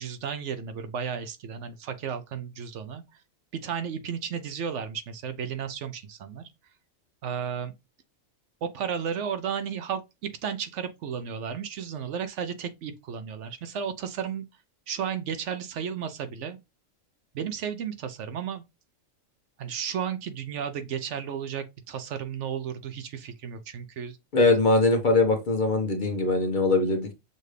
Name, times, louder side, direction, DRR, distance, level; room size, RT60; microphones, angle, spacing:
voice 1, 0.0-3.0 3.5-6.4 7.2-7.7 8.6-14.5 14.9-16.6 17.3-18.6 19.6-24.2, right 7 dB, 70° right, 0.9 m, -33 dB
voice 2, 24.3-27.1, left 2 dB, 40° left, 0.9 m, -22 dB
6.5 x 2.5 x 3.2 m
omnidirectional pair, 1.4 m